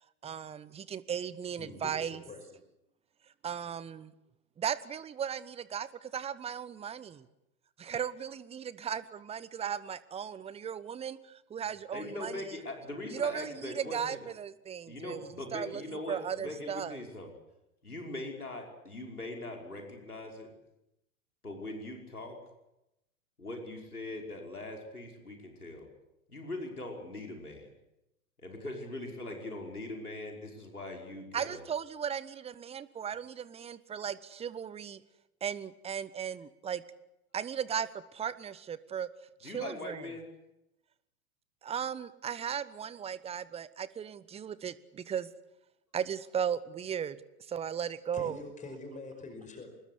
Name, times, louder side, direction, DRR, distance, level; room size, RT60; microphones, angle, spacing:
voice 1, 0.2-2.2 3.4-4.1 4.6-7.3 7.8-12.4 13.1-15.8 16.1-17.0 31.3-35.0 35.4-36.8 37.3-39.1 39.4-40.1 41.6-45.3 45.9-47.2 47.5-48.4, right 8 dB, 15° right, 17 dB, 1.0 m, -36 dB
voice 2, 1.6-2.4 48.1-49.7, left 2 dB, 15° left, 6 dB, 5.4 m, -44 dB
voice 3, 11.9-14.2 14.9-17.3 17.8-20.5 21.4-22.4 23.4-25.9 26.3-27.7 28.4-31.6 39.4-40.3, left 2 dB, 85° left, 1 dB, 5.6 m, -41 dB
26.0 x 21.0 x 8.4 m, 0.88 s
figure-of-eight pair, 100°, 43 cm